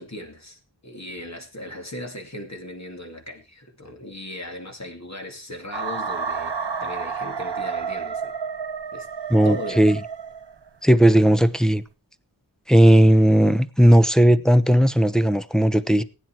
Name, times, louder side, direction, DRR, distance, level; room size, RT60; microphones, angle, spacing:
voice 1, 0.0-8.3 8.9-9.1 9.4-9.9, left 1 dB, 40° left, 2.7 m, -37 dB
sound 1, 5.7-10.7, right 5 dB, 85° right, 1.1 m, -30 dB
voice 2, 9.3-10.0 10.8-11.8 12.7-16.0, right 1 dB, ahead, 0.9 m, -16 dB
16.0 x 9.3 x 4.6 m
wide cardioid pair, 40°, 40 cm